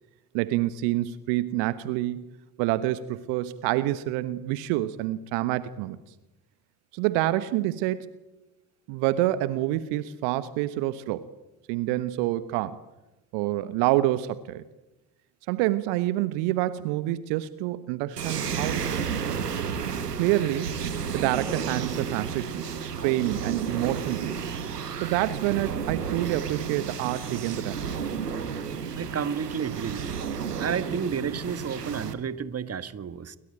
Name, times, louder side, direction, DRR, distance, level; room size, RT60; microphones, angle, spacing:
voice 1, 0.3-2.3 2.6-6.0 6.9-8.1 8.9-11.3 11.7-12.8 13.3-14.6 15.5-18.8 20.2-20.8 21.1-22.7 23.0-24.5 25.0-28.0, right 15 dB, 60° right, 15 dB, 1.3 m, -27 dB
sound 1, 18.2-32.1, right 6 dB, 85° right, 1.6 m, -32 dB
voice 2, 28.9-30.2 30.6-33.4, right 7 dB, 30° right, 15 dB, 1.6 m, -31 dB
29.0 x 22.5 x 9.0 m, 1.0 s
figure-of-eight pair, 50°, 46 cm